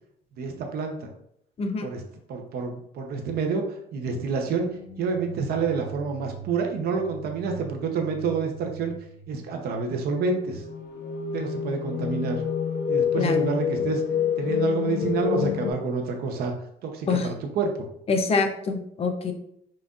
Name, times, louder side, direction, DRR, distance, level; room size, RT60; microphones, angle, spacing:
voice 1, 0.4-1.1 1.8-2.0 2.3-4.7 5.0-8.9 9.3-10.7 11.3-12.4 12.9-14.0 14.4-16.5 16.8-17.9, right 5 dB, 65° right, 3 dB, 0.8 m, -28 dB
sound 1, 4.2-10.2, right 6 dB, 10° right, 1.1 m, -43 dB
sound 2, 10.2-15.7, left 8 dB, 70° left, 0.8 m, -27 dB
voice 2, 13.2-13.5 17.1-17.3 18.1-19.3, left 4 dB, 35° left, 5 dB, 0.6 m, -25 dB
5.6 x 2.5 x 2.4 m, 0.73 s
cardioid pair, 110°, 17 cm